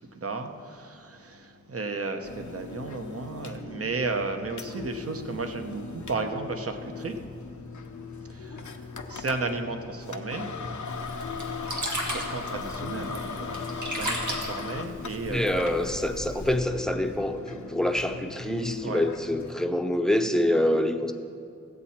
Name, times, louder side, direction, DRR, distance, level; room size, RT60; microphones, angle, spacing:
voice 1, 0.1-7.2 8.3-8.8 9.1-10.5 12.1-15.5 18.8-19.1, right 3 dB, 50° right, 6 dB, 0.9 m, -34 dB
sound 1, 2.2-19.5, left 5 dB, 75° left, 0.8 m, -38 dB
Sink (filling or washing), 10.9-16.6, right 1 dB, 85° right, 1.6 m, -36 dB
voice 2, 15.3-21.1, left 1 dB, ahead, 7 dB, 0.7 m, -26 dB
15.5 x 8.3 x 4.3 m, 2.4 s
wide cardioid pair, 65°, 29 cm